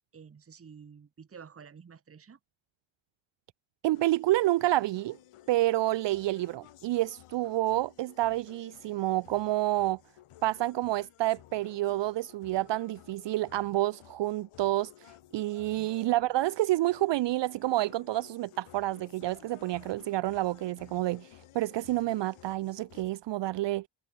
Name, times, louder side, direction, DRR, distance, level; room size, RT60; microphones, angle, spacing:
voice 1, 0.1-2.4 15.8-15.9, right 6 dB, 25° right, 1.9 m, -50 dB
voice 2, 3.8-5.2 5.5-10.0 10.4-21.3 21.5-23.9, right 16 dB, 60° right, 0.5 m, -29 dB
sound 1, 3.9-23.1, left 13 dB, 80° left, 2.7 m, -55 dB
wide cardioid pair, 175°, 50 cm